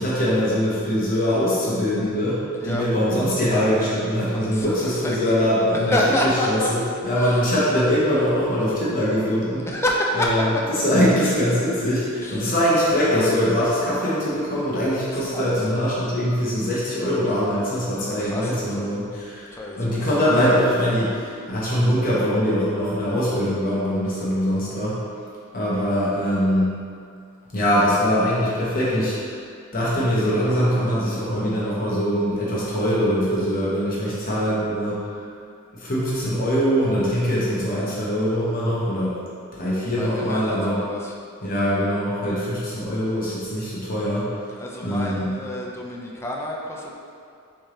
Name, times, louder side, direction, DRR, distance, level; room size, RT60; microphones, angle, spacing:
voice 1, 0.0-9.7 10.1-10.5 10.7-19.5 19.8-24.9 25.5-26.7 27.5-29.3 29.7-35.0 35.8-39.1 39.6-40.8 41.4-44.3 44.8-45.4, equal, 45° left, -8 dB, 0.9 m, -22 dB
voice 2, 4.3-5.2 5.8-6.7 7.2-7.4 9.7-10.3 12.2-12.5 15.3-15.7 17.9-18.9 19.5-20.3 40.0-41.1 44.6-46.9, left 1 dB, 15° left, -2 dB, 0.4 m, -28 dB
4.4 x 3.3 x 3.7 m, 2.4 s
head